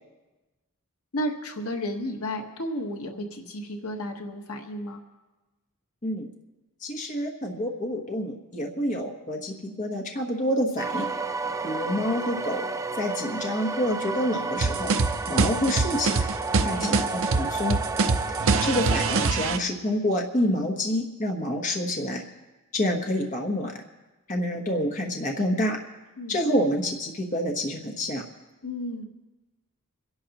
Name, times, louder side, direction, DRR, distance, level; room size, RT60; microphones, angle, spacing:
voice 1, 1.1-5.0 16.7-16.9 26.2-26.4 28.6-29.1, equal, 75° left, 3 dB, 1.3 m, -33 dB
voice 2, 6.8-11.1 11.6-12.6 12.9-15.0 15.3-16.3 16.6-17.8 18.6-22.2 22.7-23.7 24.3-25.8 26.3-28.2, left 1 dB, 35° left, 2 dB, 1.2 m, -28 dB
sound 1, 10.8-19.3, right 3 dB, 15° right, 0.4 m, -31 dB
sound 2, 14.6-19.6, right 4 dB, 60° right, 0.7 m, -24 dB
27.0 x 11.0 x 3.0 m, 1.1 s
head